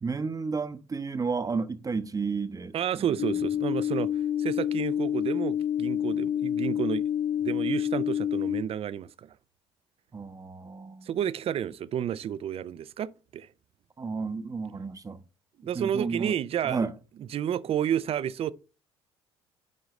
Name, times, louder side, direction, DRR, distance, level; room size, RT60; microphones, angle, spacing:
voice 1, 0.0-3.2 10.1-11.1 14.0-15.2 15.6-16.3 16.6-16.9, right 4 dB, 25° right, 0.8 m, -32 dB
voice 2, 2.7-4.1 4.4-7.0 7.4-9.3 11.1-13.5 15.6-16.9 17.3-18.5, right 9 dB, 50° right, 0.5 m, -30 dB
sound 1, 3.2-8.6, left 10 dB, 75° left, 0.7 m, -28 dB
10.5 x 3.9 x 3.1 m
hypercardioid pair, 60°, 13 cm